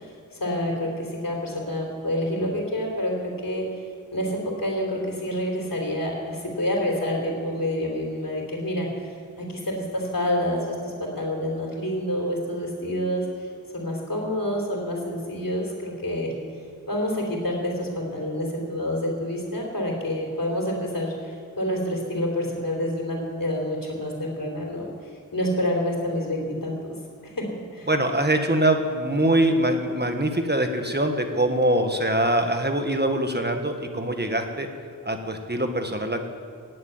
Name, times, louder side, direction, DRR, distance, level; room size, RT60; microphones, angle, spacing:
voice 1, 0.0-3.7 4.1-16.3 16.9-24.9 25.3-26.9 27.3-27.5 27.7-27.9, left 1 dB, 80° left, 0 dB, 3.4 m, -28 dB
voice 2, 27.9-34.7 35.0-36.3, right 1 dB, 30° right, 5 dB, 1.4 m, -23 dB
17.0 x 7.8 x 9.5 m, 2.2 s
wide cardioid pair, 45°, 33 cm